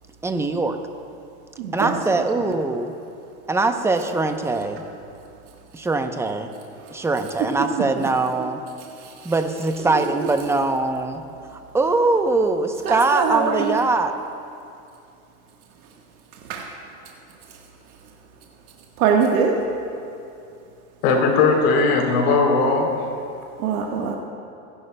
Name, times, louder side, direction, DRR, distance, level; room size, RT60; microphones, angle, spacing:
voice 1, 0.2-0.8 1.7-2.9 3.5-4.8 5.7-6.5 6.9-8.6 9.2-11.2 11.5-14.1, right 3 dB, 5° right, 6 dB, 0.7 m, -22 dB
voice 2, 1.6-2.0 8.0-8.1 9.9-10.0 12.8-13.7 16.5-16.7 19.0-19.6 23.6-24.2, right 6 dB, 75° right, 0 dB, 1.5 m, -22 dB
voice 3, 21.0-23.1, left 4 dB, 70° left, 0 dB, 3.5 m, -18 dB
29.0 x 11.0 x 2.2 m, 2.6 s
hypercardioid pair, 110°, 43 cm